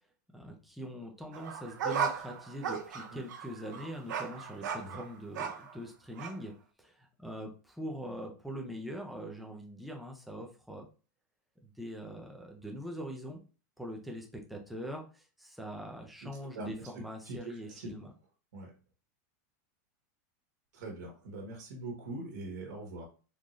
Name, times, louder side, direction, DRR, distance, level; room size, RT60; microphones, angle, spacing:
voice 1, 0.3-6.5 6.8-10.8 11.6-13.4 13.8-18.1, equal, ahead, 1 dB, 0.5 m, -43 dB
sound 1, 1.3-5.8 6.2-6.4, right 7 dB, 90° right, 0.6 m, -36 dB
voice 2, 16.5-16.9 17.2-17.9 18.5-18.7 20.7-23.0, right 2 dB, 70° right, -1 dB, 1.2 m, -42 dB
3.8 x 2.6 x 3.0 m, 0.35 s
supercardioid pair, 170°, 10 cm